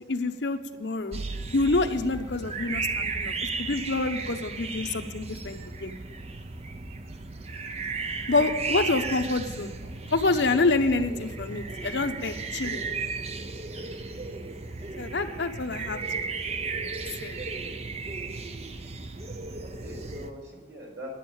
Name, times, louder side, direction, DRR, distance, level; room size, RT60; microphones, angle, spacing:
voice 1, 0.1-1.2 1.5-5.9 8.3-9.7 10.1-12.8 15.0-16.2 17.2-17.4, left 3 dB, 80° left, 7 dB, 0.9 m, -27 dB
sound 1, 1.1-20.3, right 4 dB, 35° right, 0.7 m, -35 dB
voice 2, 9.8-10.2 16.7-17.1 19.6-21.1, equal, 70° right, -2 dB, 5.2 m, -44 dB
11.0 x 7.8 x 8.7 m, 1.2 s
head